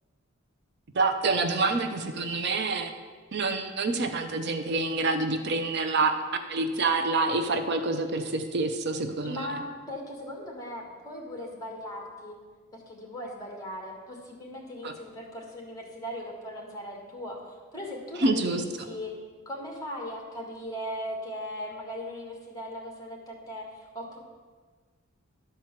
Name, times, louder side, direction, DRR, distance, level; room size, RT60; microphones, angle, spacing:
voice 1, 0.9-2.9 3.3-6.1 6.5-9.5 14.8-14.9 18.2-18.9, right 3 dB, 50° right, 7 dB, 0.5 m, -27 dB
voice 2, 9.2-12.4 12.7-17.4 17.7-19.1 19.4-24.2, equal, 15° left, 0 dB, 1.7 m, -38 dB
11.5 x 4.5 x 7.3 m, 1.5 s
head